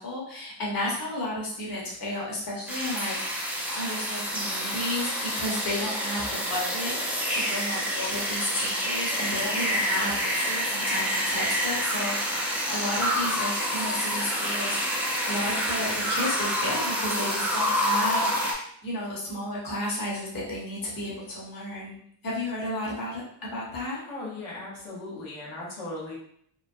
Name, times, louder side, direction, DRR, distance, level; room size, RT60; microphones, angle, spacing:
voice 1, 0.0-3.1 3.7-14.8 15.2-18.3 18.8-22.0 22.2-24.0, left 1 dB, 45° left, -4 dB, 1.1 m, -32 dB
sound 1, 2.7-18.5, equal, 5° right, 0.6 m, -28 dB
voice 2, 24.1-26.1, left 2 dB, 85° left, -6 dB, 1.2 m, -37 dB
3.0 x 2.0 x 2.6 m, 0.67 s
cardioid pair, 90°, 47 cm